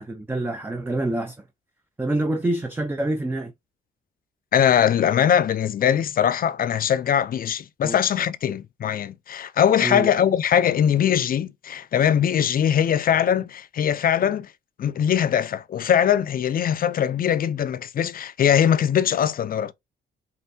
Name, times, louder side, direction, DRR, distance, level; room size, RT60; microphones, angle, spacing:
voice 1, 0.0-1.4 2.0-3.5 7.8-8.0 9.8-10.1, right 2 dB, 10° right, 0.5 m, -26 dB
voice 2, 4.5-14.5 14.8-19.7, left 9 dB, 45° left, 0.4 m, -21 dB
5.5 x 2.6 x 2.7 m
cardioid pair, 90°, 20 cm